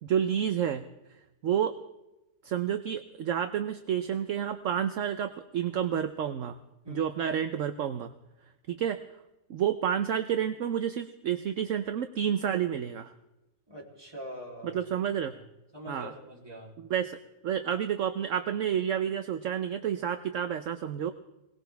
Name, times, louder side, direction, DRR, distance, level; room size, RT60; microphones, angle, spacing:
voice 1, 0.0-0.8 1.4-1.8 2.4-6.6 6.9-8.1 8.7-9.0 9.5-13.1 14.6-15.3 15.9-16.1 16.8-17.2 17.4-21.1, right 9 dB, 65° right, 9 dB, 1.0 m, -30 dB
voice 2, 13.7-14.8 15.7-16.8, equal, 15° right, -1 dB, 3.2 m, -43 dB
22.5 x 19.0 x 3.4 m, 0.98 s
omnidirectional pair, 1.5 m